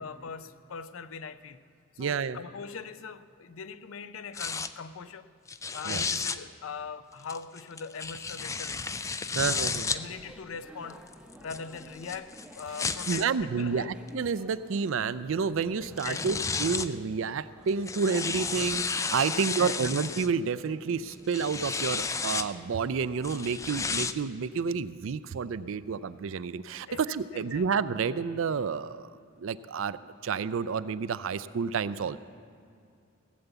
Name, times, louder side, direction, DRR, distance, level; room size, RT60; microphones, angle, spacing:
voice 1, 0.0-1.6 1.9-5.3 5.7-11.0 11.4-13.9 16.0-16.4 19.3-19.8 26.9-27.0 27.3-27.7, left 5 dB, 70° left, 0.5 m, -41 dB
voice 2, 2.0-2.4 5.8-6.1 9.3-9.9 13.1-29.1 29.4-32.2, right 5 dB, 70° right, 0.4 m, -30 dB
sound 1, 4.3-4.7 5.5-6.4 7.3-10.0 10.9-13.3 14.1-14.2 15.6-15.7 16.0-16.9 17.7-20.3 21.1-22.5 23.2-24.1, left 5 dB, 15° left, 0.3 m, -32 dB
sound 2, 9.7-24.0, equal, 5° right, 0.7 m, -53 dB
17.0 x 6.9 x 8.1 m
head